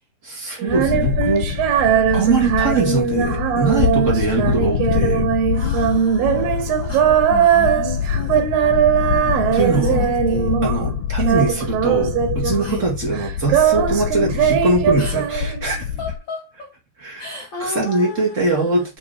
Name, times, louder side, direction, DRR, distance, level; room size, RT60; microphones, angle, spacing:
voice 1, 0.2-1.5 2.1-5.2 9.5-10.0 10.6-15.9 17.0-17.3 17.6-19.0, right 3 dB, 25° right, 1.9 m, -22 dB
Female singing, 0.6-10.9 11.2-12.9 13.1-15.8, right 8 dB, 90° right, 3.0 m, -20 dB
sound 1, 0.7-16.2, left 8 dB, 80° left, 1.8 m, -25 dB
voice 2, 5.5-8.6 9.5-10.5 12.6-12.9 15.0-15.3 16.0-16.8 17.2-18.9, left 4 dB, 55° left, 1.4 m, -33 dB
7.9 x 3.7 x 4.0 m
omnidirectional pair, 4.0 m